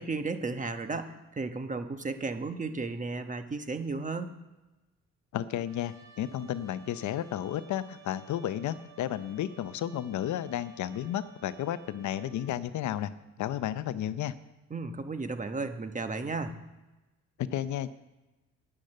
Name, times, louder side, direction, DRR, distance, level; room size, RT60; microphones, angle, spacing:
voice 1, 0.0-4.3 14.7-16.6, right 3 dB, 25° right, 8 dB, 1.2 m, -34 dB
voice 2, 5.3-13.1 13.4-14.3 17.4-17.9, left 11 dB, 70° left, 14 dB, 0.7 m, -32 dB
Trumpet, 5.7-12.5, right 4 dB, 65° right, 2.4 m, -54 dB
10.5 x 10.0 x 6.6 m, 1.1 s
cardioid pair, 90°, 30 cm